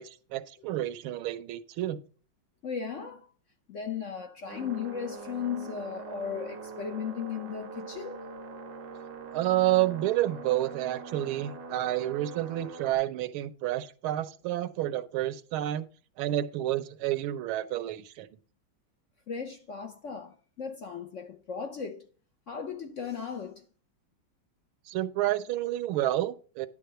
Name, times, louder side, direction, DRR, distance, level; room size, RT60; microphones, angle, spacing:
voice 1, 0.0-2.0 9.3-15.8 16.2-18.3 24.9-26.7, right 14 dB, 90° right, 1.6 m, -29 dB
voice 2, 2.6-3.3 3.7-8.2 19.3-22.1 22.5-23.6, left 7 dB, 65° left, 0.7 m, -36 dB
sound 1, 4.5-12.9, right 4 dB, 65° right, 1.9 m, -43 dB
10.5 x 3.6 x 6.7 m
omnidirectional pair, 2.2 m